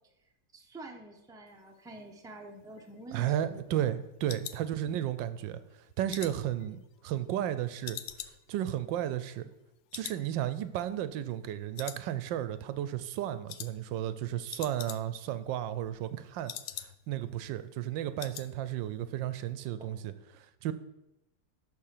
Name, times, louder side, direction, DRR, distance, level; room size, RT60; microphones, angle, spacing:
voice 1, 0.5-3.8 19.8-19.9, right 2 dB, 5° right, 2 dB, 0.8 m, -47 dB
sound 1, 2.6-5.3 5.7-7.5 7.8-9.7 9.9-10.3 10.5-10.6 11.1-11.5 11.8-12.5 12.8-13.1 13.5-13.7 14.0-14.1 14.3-15.3 15.6-17.2 17.5-17.6 17.9-18.5 18.8-19.1 19.4-19.5, left 11 dB, 75° left, 0.8 m, -44 dB
voice 2, 3.1-5.6 6.0-8.0 8.5-9.5 9.9-16.5 16.8-20.7, right 11 dB, 85° right, 12 dB, 1.3 m, -33 dB
11.5 x 4.2 x 6.7 m, 0.91 s
omnidirectional pair, 2.0 m